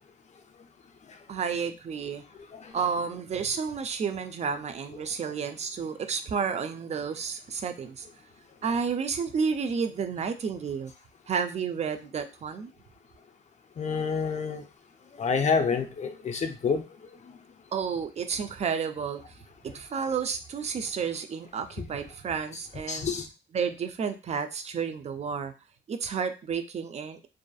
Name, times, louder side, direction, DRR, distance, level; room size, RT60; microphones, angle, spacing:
voice 1, 1.3-2.2 2.7-8.1 8.6-10.9 11.3-12.7 17.7-19.4 19.6-23.1 23.5-25.5 25.9-27.3, right 6 dB, 35° right, 0.4 m, -31 dB
voice 2, 13.8-14.6 15.2-16.8 21.8-21.9 22.9-23.2, left 5 dB, 35° left, 0.5 m, -27 dB
2.5 x 2.4 x 2.3 m
cardioid pair, 90°, 20 cm